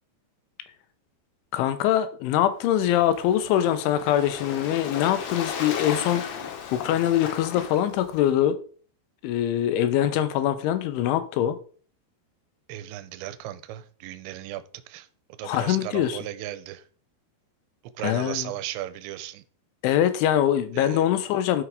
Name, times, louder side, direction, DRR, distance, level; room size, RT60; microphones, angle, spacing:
voice 1, 1.5-6.2 6.7-8.6 9.2-11.6 15.4-16.2 18.0-18.5 19.8-21.6, left 11 dB, 90° left, 3.4 m, -23 dB
Waves surf, 2.6-8.3, left 7 dB, 75° left, 3.6 m, -36 dB
voice 2, 12.7-15.1 15.4-16.8 18.0-19.4 20.7-21.1, right 13 dB, 80° right, 3.0 m, -36 dB
11.0 x 6.3 x 4.8 m
omnidirectional pair, 5.4 m